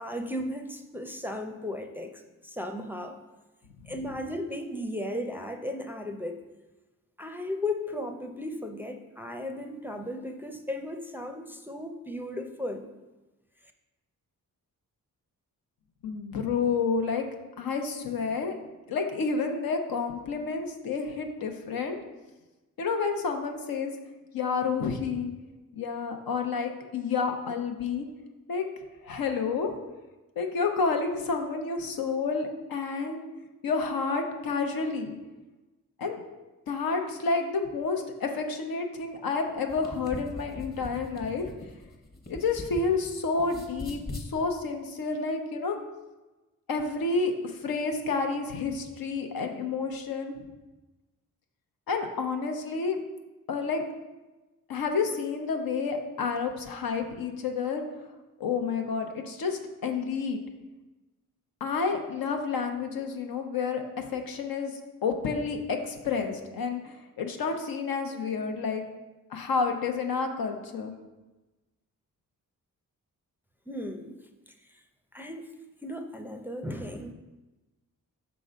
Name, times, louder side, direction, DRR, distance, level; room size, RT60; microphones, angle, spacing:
voice 1, 0.0-3.2 3.9-6.5 7.2-12.9 73.7-74.8 75.1-75.5 75.8-77.1, left 1 dB, 5° right, 4 dB, 0.5 m, -36 dB
voice 2, 16.0-17.3 17.6-18.6 18.9-22.0 22.8-23.9 24.3-25.3 25.7-28.1 28.5-28.6 29.0-29.7 30.4-33.2 33.6-35.2 36.0-36.2 36.7-41.4 42.3-45.8 46.7-50.3 51.9-53.0 53.5-53.8 54.7-57.8 58.4-60.4 61.6-64.7 65.0-68.8 69.3-70.9, left 4 dB, 80° left, 4 dB, 0.8 m, -30 dB
sound 1, 39.6-43.1 43.4-44.3, left 2 dB, 30° left, 1.0 m, -40 dB
5.9 x 3.9 x 5.0 m, 1.1 s
cardioid pair, 90°, 35 cm